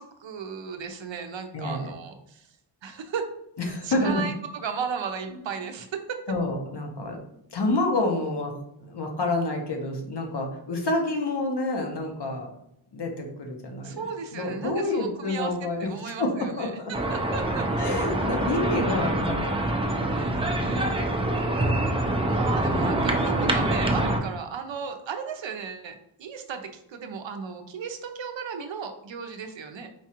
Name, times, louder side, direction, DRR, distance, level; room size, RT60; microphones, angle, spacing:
voice 1, 0.0-2.5 2.8-3.3 3.6-6.2 13.8-15.5 15.8-17.7 20.2-21.0 22.3-29.9, right 6 dB, 70° right, 6 dB, 0.6 m, -35 dB
voice 2, 1.5-1.9 3.7-4.2 6.3-7.2 7.5-8.5 8.8-12.5 12.9-14.0 14.3-16.9 17.8-20.9, left 2 dB, 55° left, 2 dB, 0.9 m, -28 dB
sound 1, 16.9-24.2, right 1 dB, 10° right, 0.4 m, -25 dB
4.5 x 2.3 x 2.9 m, 0.79 s
cardioid pair, 55°, 48 cm